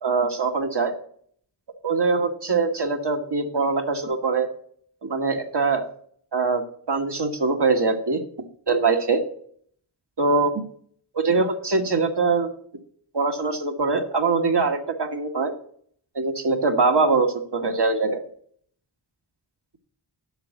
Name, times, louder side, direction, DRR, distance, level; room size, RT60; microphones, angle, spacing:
voice 1, 0.0-0.9 1.8-4.5 5.0-5.8 6.3-6.6 6.9-8.2 8.7-9.2 10.2-10.5 11.1-12.5 13.1-15.5 16.1-18.2, right 4 dB, 60° right, 3 dB, 1.4 m, -22 dB
8.0 x 6.1 x 8.0 m, 0.62 s
wide cardioid pair, 55°, 46 cm